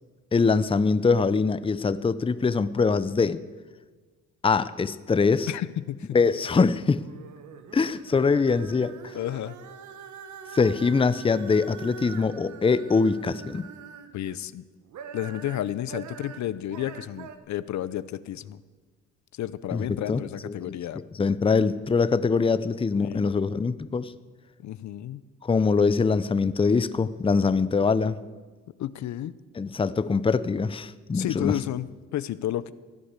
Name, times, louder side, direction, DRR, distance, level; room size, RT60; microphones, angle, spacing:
voice 1, 0.3-3.4 4.4-5.5 6.1-7.0 7.7-9.1 10.5-13.7 19.7-20.8 21.2-24.1 25.4-28.2 29.6-31.5, left 4 dB, 20° left, 15 dB, 0.6 m, -23 dB
voice 2, 5.5-6.2 9.1-9.5 14.1-14.6 15.1-18.6 19.3-21.0 23.0-23.3 24.6-25.3 28.8-29.3 31.1-32.7, left 12 dB, 65° left, 16 dB, 0.7 m, -31 dB
sound 1, 6.9-14.4 14.8-17.4, right 7 dB, 75° right, 1.4 m, -44 dB
16.0 x 10.0 x 8.2 m, 1.4 s
cardioid pair, 90°, 30 cm